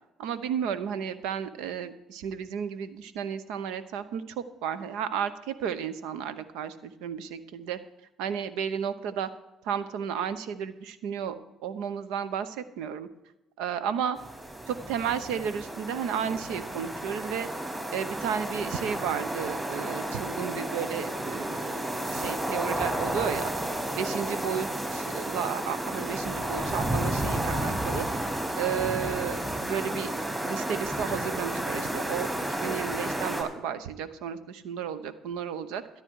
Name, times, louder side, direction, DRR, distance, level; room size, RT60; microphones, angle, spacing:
voice 1, 0.2-7.8 8.2-9.3 9.6-11.4 11.6-13.1 13.6-14.2 14.7-17.5 17.9-23.5 24.0-28.1 28.6-30.1 30.4-36.0, right 8 dB, 75° right, 13 dB, 0.9 m, -33 dB
sound 1, 14.2-33.4, right 1 dB, 20° right, 4.6 m, -32 dB
13.0 x 10.5 x 4.7 m, 0.95 s
hypercardioid pair, 60°, 0 cm